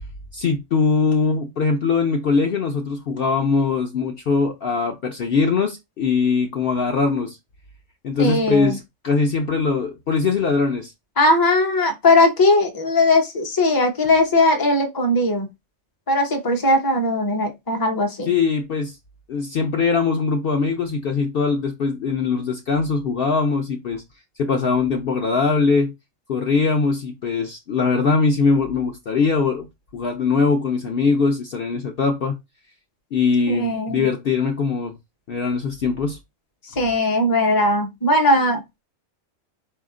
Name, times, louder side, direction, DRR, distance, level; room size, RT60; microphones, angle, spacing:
voice 1, 0.3-7.4 8.0-10.9 18.3-19.0 19.3-24.0 24.4-25.9 26.3-29.7 29.9-32.4 33.1-34.9 35.3-36.2, left 4 dB, 55° left, 0.7 m, -21 dB
voice 2, 8.2-8.8 11.2-15.5 16.1-18.3 33.5-34.1 36.8-38.6, left 2 dB, 20° left, 0.7 m, -19 dB
4.2 x 2.8 x 3.6 m
omnidirectional pair, 1.3 m